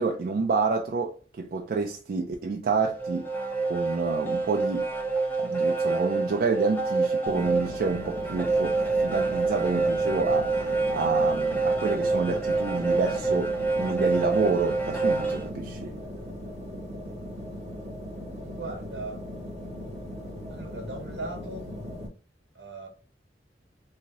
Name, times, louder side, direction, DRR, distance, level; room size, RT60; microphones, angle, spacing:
voice 1, 0.0-3.3 3.7-4.9 5.4-15.9, right 4 dB, 55° right, 0.3 m, -28 dB
sound 1, 2.9-15.5, right 3 dB, 10° left, 0.5 m, -27 dB
sound 2, 7.3-22.1, equal, 40° right, 0.8 m, -38 dB
voice 2, 18.4-19.2 20.5-21.7 22.5-22.9, right 2 dB, 85° right, 1.0 m, -38 dB
2.8 x 2.7 x 2.8 m
head